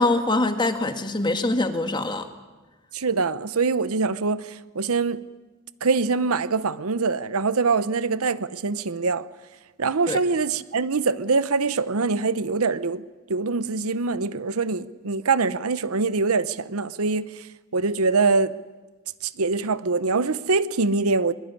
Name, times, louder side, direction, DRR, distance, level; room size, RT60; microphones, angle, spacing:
voice 1, 0.0-2.3 10.1-10.2, left 2 dB, 20° left, 1.8 m, -23 dB
voice 2, 2.9-4.5 4.7-5.2 5.8-9.3 9.8-13.0 13.3-17.3 17.7-18.5 19.4-21.3, right 4 dB, 80° right, 0.9 m, -23 dB
23.0 x 22.5 x 9.8 m
head